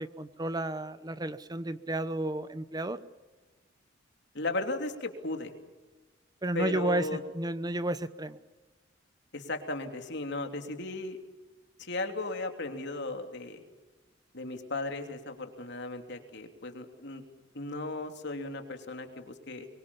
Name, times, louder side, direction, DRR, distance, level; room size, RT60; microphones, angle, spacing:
voice 1, 0.0-3.0 6.4-7.1 7.3-8.4, right 1 dB, 20° right, 13 dB, 0.9 m, -32 dB
voice 2, 4.3-5.5 6.5-7.2 9.3-11.2 11.8-13.6 14.3-17.2 17.5-19.7, left 2 dB, 65° left, 5 dB, 3.1 m, -36 dB
24.0 x 23.5 x 7.2 m, 1.2 s
head